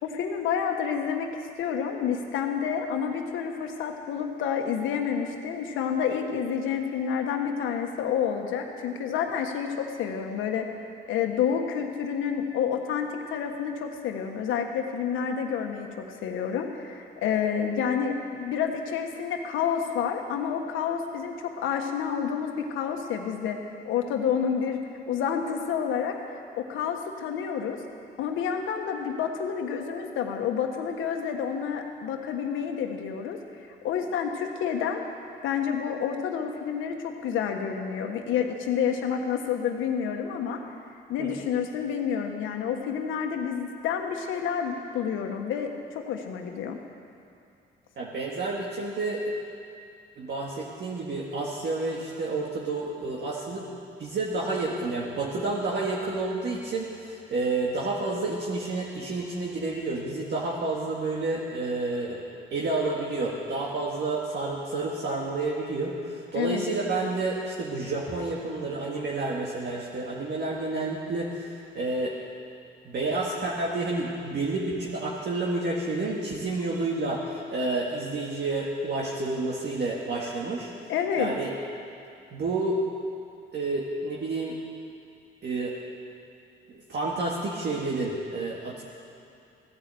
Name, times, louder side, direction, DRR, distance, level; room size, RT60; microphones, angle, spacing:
voice 1, 0.0-1.3 1.6-10.7 11.1-23.6 23.8-27.8 28.2-33.4 33.7-35.0 35.4-40.6 41.1-46.8 66.3-66.7 80.9-81.3, left 7 dB, 90° left, 4 dB, 1.4 m, -29 dB
voice 2, 48.0-49.3 50.2-53.7 54.0-62.2 62.5-71.5 71.8-72.1 72.9-80.7 81.2-81.5 82.3-82.8 83.5-84.6 85.4-85.7 86.7-88.8, right 2 dB, 60° right, -4 dB, 1.9 m, -30 dB
15.5 x 10.0 x 7.8 m, 2.6 s
cardioid pair, 90°, 20 cm